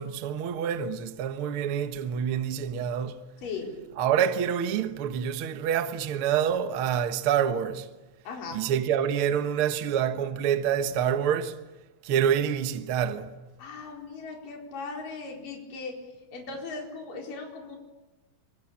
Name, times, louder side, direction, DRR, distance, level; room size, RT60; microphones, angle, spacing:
voice 1, 0.0-3.2 4.0-7.9 8.5-11.6 12.0-13.3, right 8 dB, 60° right, 1.5 m, -27 dB
voice 2, 3.4-3.8 8.2-8.6 13.6-15.9 16.3-17.8, left 4 dB, 60° left, 6.0 m, -38 dB
27.0 x 25.0 x 8.8 m
omnidirectional pair, 4.4 m